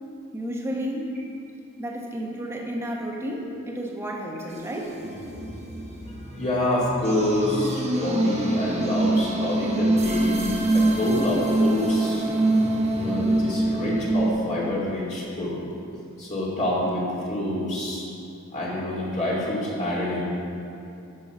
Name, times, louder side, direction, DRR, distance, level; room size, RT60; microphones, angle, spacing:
voice 1, 0.3-1.1 1.8-5.1 9.7-9.8 14.9-15.0 15.7-15.8, equal, 10° right, -1 dB, 1.1 m, -32 dB
sound 1, 4.5-14.3, right 1 dB, 30° right, 1.2 m, -25 dB
voice 2, 6.1-12.3 13.0-15.6 16.2-18.0 18.5-20.2, left 1 dB, 35° left, -6 dB, 2.2 m, -27 dB
12.5 x 6.5 x 5.5 m, 2.6 s
head